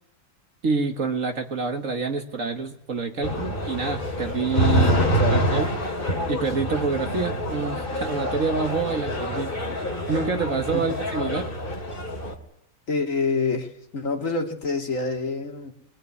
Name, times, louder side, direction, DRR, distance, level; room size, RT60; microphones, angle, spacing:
voice 1, 0.6-4.9 5.3-5.7 6.3-11.5, right 4 dB, 50° right, 5 dB, 1.8 m, -27 dB
sound 1, 3.2-12.3, equal, 30° left, 3.0 m, -26 dB
voice 2, 4.7-5.4 10.7-11.0 12.9-15.7, left 3 dB, 45° left, 2 dB, 2.8 m, -27 dB
23.5 x 18.0 x 9.7 m, 0.83 s
omnidirectional pair, 1.9 m